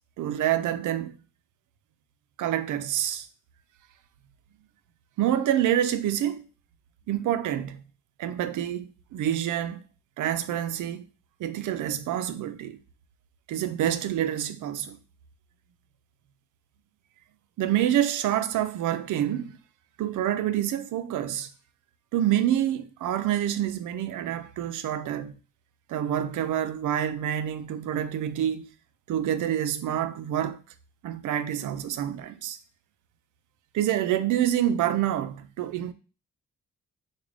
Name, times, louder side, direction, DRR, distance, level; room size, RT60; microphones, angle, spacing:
voice 1, 0.2-1.2 2.4-3.3 5.2-6.4 7.1-7.8 8.2-9.8 10.2-11.1 11.4-12.8 13.5-15.0 17.6-19.6 20.0-21.5 22.1-25.3 25.9-28.7 29.1-30.6 31.0-32.6 33.7-35.9, right 11 dB, 75° right, 0.4 m, -27 dB
3.6 x 2.2 x 3.1 m
cardioid pair, 65°, 31 cm